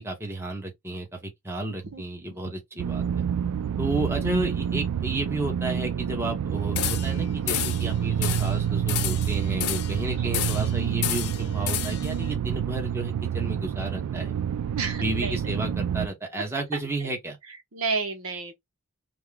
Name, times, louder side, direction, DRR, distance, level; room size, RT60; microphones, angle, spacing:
voice 1, 0.0-3.2 3.8-14.3 15.0-17.4, right 2 dB, 10° right, 1.0 m, -32 dB
sound 1, 2.8-16.1, right 8 dB, 85° right, 0.3 m, -28 dB
sound 2, 6.8-7.2 7.5-7.9 8.2-8.5 8.9-10.0 10.3-10.7 11.0-12.1, left 11 dB, 75° left, 0.4 m, -30 dB
voice 2, 14.7-15.4 17.0-17.1 17.7-18.5, right 4 dB, 65° right, 0.9 m, -31 dB
3.5 x 2.2 x 3.4 m
head